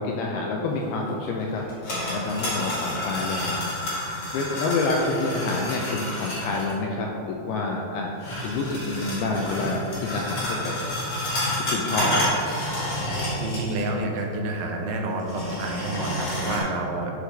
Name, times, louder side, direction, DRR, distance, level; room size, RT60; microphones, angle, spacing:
voice 1, 0.0-3.6 4.3-8.1 8.4-10.8 11.6-12.4, left 3 dB, 85° left, -1 dB, 2.2 m, -28 dB
sound 1, 1.6-6.7 8.2-13.9 14.2-14.3 15.2-16.6, left 1 dB, 45° left, 2.0 m, -29 dB
voice 2, 13.4-17.1, right 2 dB, 80° right, 1 dB, 2.8 m, -29 dB
11.0 x 4.8 x 3.3 m, 2.8 s
omnidirectional pair, 5.0 m